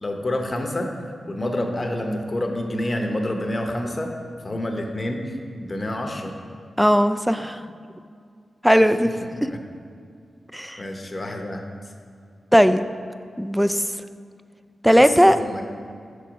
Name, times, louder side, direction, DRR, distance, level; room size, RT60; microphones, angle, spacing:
voice 1, 0.0-0.9 1.3-4.1 4.4-5.2 5.6-6.3 9.5-9.6 10.8-11.6 14.9-15.6, left 1 dB, 35° left, 3 dB, 0.8 m, -28 dB
voice 2, 6.8-7.6 8.6-9.1 9.4-9.5 10.5-10.8 12.5-12.9 13.4-13.8 14.8-15.4, equal, ahead, 10 dB, 0.3 m, -17 dB
6.5 x 4.7 x 5.1 m, 2.3 s
cardioid pair, 65°, 0 cm